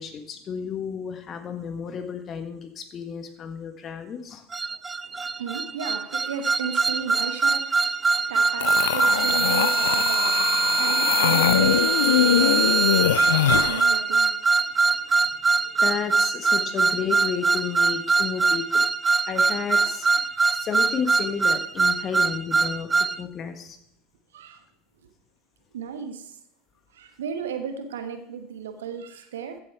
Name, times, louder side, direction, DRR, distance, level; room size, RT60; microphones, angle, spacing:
voice 1, 0.0-4.4 4.7-4.8 15.6-18.8 19.2-20.2 20.5-23.8, left 7 dB, 35° left, 1.5 m, -32 dB
sound 1, 4.5-23.2, right 4 dB, 20° right, 0.4 m, -22 dB
voice 2, 5.0-15.7 24.3-24.6 25.7-26.4 26.9-29.6, right 6 dB, 70° right, 1.2 m, -35 dB
sound 2, 8.6-13.9, left 11 dB, 70° left, 0.3 m, -23 dB
15.0 x 7.0 x 4.7 m
figure-of-eight pair, 75°, 0 cm